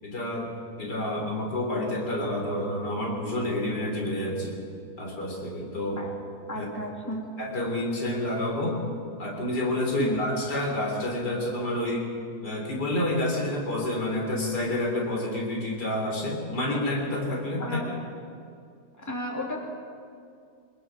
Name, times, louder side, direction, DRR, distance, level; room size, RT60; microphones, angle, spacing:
voice 1, 0.0-4.6 5.0-6.0 6.6-6.7 7.4-8.8 9.2-12.1 12.4-17.9, left 1 dB, 85° left, -1 dB, 4.3 m, -29 dB
voice 2, 6.5-7.2 10.0-10.2 17.6-17.9 19.0-19.6, left 1 dB, 10° left, -2 dB, 3.0 m, -33 dB
24.0 x 20.5 x 6.1 m, 2.4 s
omnidirectional pair, 1.7 m